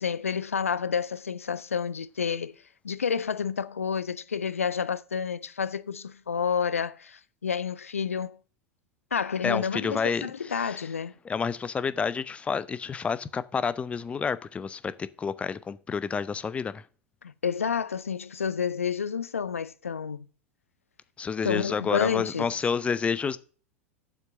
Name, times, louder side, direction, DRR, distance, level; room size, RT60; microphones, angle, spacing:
voice 1, 0.0-2.6 2.8-8.4 9.1-11.1 17.2-20.3 21.4-22.5, left 6 dB, 75° left, 0.5 m, -29 dB
voice 2, 9.4-10.8 11.2-16.8 21.2-23.4, left 6 dB, 15° left, 0.5 m, -29 dB
7.4 x 6.2 x 6.7 m
figure-of-eight pair, 85°, 7 cm